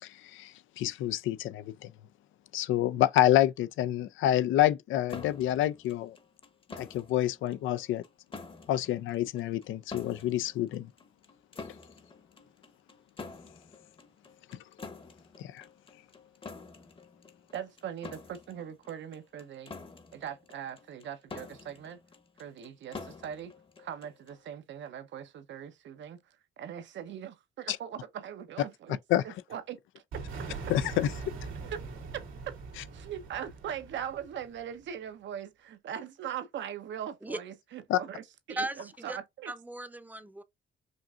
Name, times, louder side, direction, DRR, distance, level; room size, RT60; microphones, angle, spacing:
voice 1, 0.0-1.9 2.5-6.2 6.8-8.0 8.7-10.9 15.4-15.7 27.7-27.8 29.1-29.2 30.7-31.3 37.9-38.0, left 13 dB, 80° left, 0.5 m, -28 dB
sound 1, 5.1-24.5, left 4 dB, 25° left, 0.9 m, -48 dB
voice 2, 17.5-19.7 20.1-22.0 22.4-23.5 23.8-29.0 29.2-30.2 31.6-31.8 32.1-32.6 32.9-39.5, right 9 dB, 70° right, 0.8 m, -41 dB
sound 2, 30.1-34.8, right 4 dB, 85° right, 1.9 m, -42 dB
voice 3, 38.6-39.2 39.5-40.4, right 1 dB, 10° right, 0.7 m, -37 dB
5.2 x 2.6 x 2.4 m
cardioid pair, 90°, 20 cm